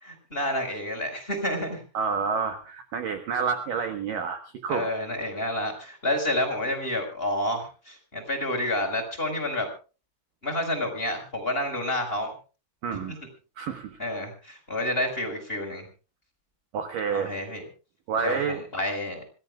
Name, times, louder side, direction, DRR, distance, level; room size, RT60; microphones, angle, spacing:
voice 1, 0.0-1.8 4.7-9.7 10.4-12.3 14.0-15.8 17.1-17.6 18.2-19.2, left 1 dB, 10° left, 2 dB, 4.4 m, -29 dB
voice 2, 1.9-4.9 12.8-13.2 13.6-14.0 16.7-17.3 18.1-18.6, right 6 dB, 75° right, 7 dB, 2.0 m, -29 dB
26.0 x 18.0 x 2.4 m, 0.35 s
omnidirectional pair, 5.9 m